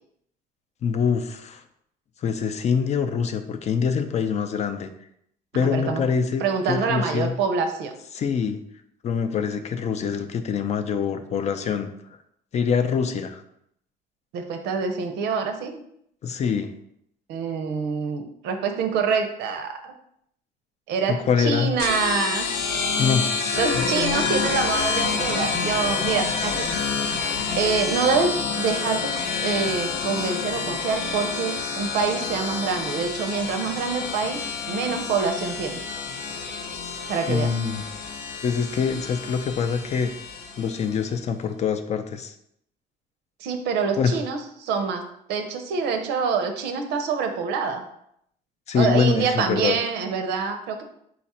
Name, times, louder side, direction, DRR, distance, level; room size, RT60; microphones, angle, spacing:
voice 1, 0.8-1.6 2.2-4.9 5.5-7.3 8.1-8.6 9.0-11.9 12.5-13.4 16.2-16.7 21.1-21.7 23.0-23.4 23.7-23.8 37.3-37.8 38.4-40.1 40.6-42.3 44.0-44.2 48.7-49.8, left 6 dB, 40° left, 8 dB, 0.4 m, -24 dB
voice 2, 5.5-6.0 6.4-7.9 14.3-15.8 17.3-19.9 20.9-22.5 23.5-26.7 27.6-29.1 29.4-34.4 34.7-35.8 37.1-37.5 43.4-45.0 45.3-47.8 48.7-50.8, right 5 dB, 85° right, 6 dB, 0.6 m, -26 dB
sound 1, 21.8-40.9, left 5 dB, 75° left, 0.7 m, -28 dB
4.1 x 2.4 x 4.2 m, 0.73 s
cardioid pair, 110°, 17 cm